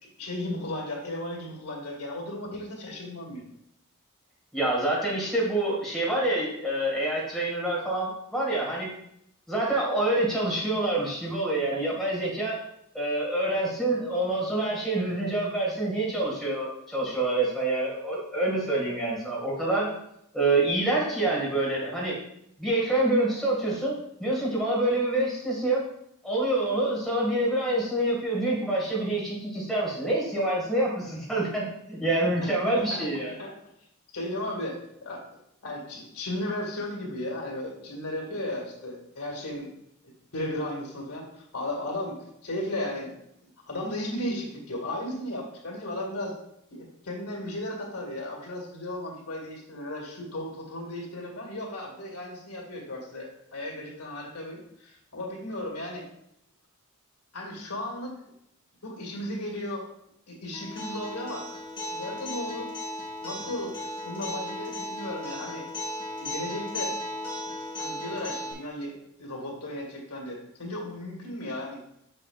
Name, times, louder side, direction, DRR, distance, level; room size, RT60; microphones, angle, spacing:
voice 1, 0.2-3.5 32.4-33.5 34.1-35.2 35.6-39.7 40.3-43.1 43.7-46.3 46.7-56.1 57.3-58.1 58.8-59.9 60.3-61.5 61.9-62.7 63.2-65.7 66.2-66.9 67.8-68.9 69.2-71.8, left 1 dB, 85° left, -1 dB, 2.0 m, -35 dB
voice 2, 4.5-8.9 9.5-12.6 12.9-19.9 20.3-22.2 22.6-23.9 24.2-25.8 26.2-31.6 31.9-33.3, right 2 dB, ahead, -5 dB, 2.0 m, -26 dB
Acoustic guitar, 60.5-68.5, left 1 dB, 20° left, 1.9 m, -36 dB
7.7 x 6.4 x 2.5 m, 0.76 s
head